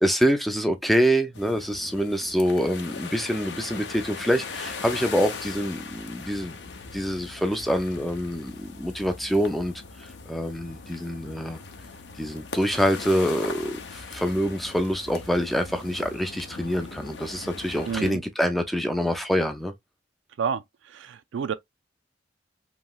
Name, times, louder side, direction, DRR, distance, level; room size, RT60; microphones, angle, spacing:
voice 1, 0.0-6.6 6.9-9.7 10.3-11.6 12.2-19.7, equal, ahead, 0.4 m, -25 dB
sound 1, 1.3-18.1, left 4 dB, 65° left, 0.6 m, -40 dB
voice 2, 17.9-18.2 20.4-20.6 20.9-21.5, right 6 dB, 80° right, 0.3 m, -29 dB
3.0 x 2.7 x 2.2 m
head